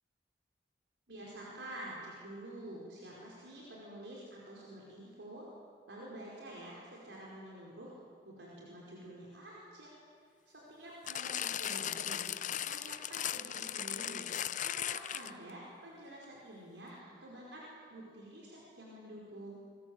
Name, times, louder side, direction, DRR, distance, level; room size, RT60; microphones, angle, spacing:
voice 1, 1.1-5.5 5.9-7.9 8.2-9.9 10.7-12.3 12.6-14.3 14.6-19.6, right 1 dB, 75° right, -4 dB, 5.0 m, -48 dB
sound 1, 11.1-15.5 16.2-16.3, left 10 dB, 45° left, 0.6 m, -37 dB
27.0 x 22.0 x 8.0 m, 2.1 s
head